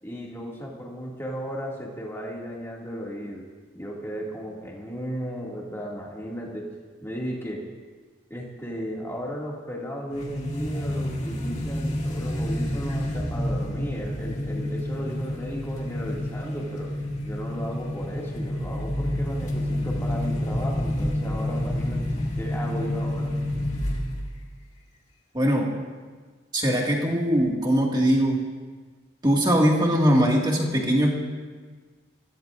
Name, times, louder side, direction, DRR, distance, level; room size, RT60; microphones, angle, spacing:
voice 1, 0.0-3.5 3.7-6.7 7.0-7.7 8.3-16.9 17.3-23.3, equal, 15° left, -3 dB, 2.3 m, -35 dB
sound 1, 10.1-24.4, left 1 dB, 35° left, 1.9 m, -29 dB
voice 2, 25.3-25.7 26.5-28.4 29.2-31.1, equal, 20° right, -1 dB, 2.0 m, -21 dB
24.0 x 15.5 x 2.6 m, 1.4 s
head